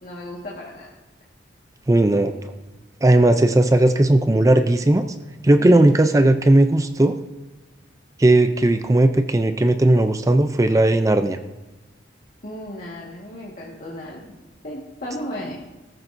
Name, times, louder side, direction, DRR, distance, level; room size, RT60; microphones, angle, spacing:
voice 1, 0.0-0.9 5.6-5.9 12.4-14.3 14.6-15.5, equal, 45° left, -4 dB, 1.7 m, -34 dB
voice 2, 1.9-2.3 3.0-5.0 5.4-7.1 8.2-11.4, right 1 dB, 15° right, 8 dB, 0.4 m, -16 dB
16.5 x 14.0 x 2.7 m, 1.1 s
head